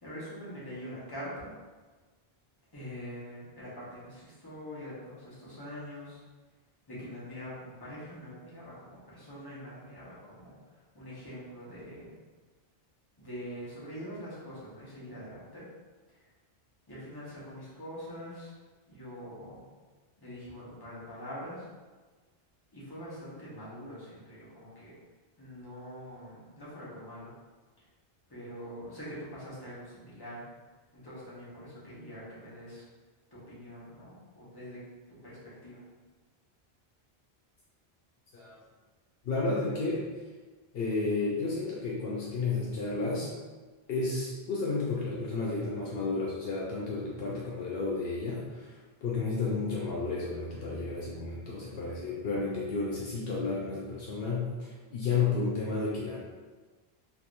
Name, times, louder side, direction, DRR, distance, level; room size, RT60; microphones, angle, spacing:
voice 1, 0.0-1.5 2.7-6.2 6.9-12.2 13.2-15.6 16.1-16.2 16.9-18.5 18.9-19.6 20.2-21.7 22.7-24.9 25.4-27.3 28.3-30.4 30.9-32.8 33.3-34.8 35.1-35.8, equal, 25° left, -9 dB, 1.0 m, -44 dB
voice 2, 39.2-40.0 40.7-43.3 43.9-56.2, left 3 dB, 70° left, -4 dB, 0.8 m, -32 dB
3.3 x 2.9 x 2.5 m, 1.3 s
omnidirectional pair, 1.0 m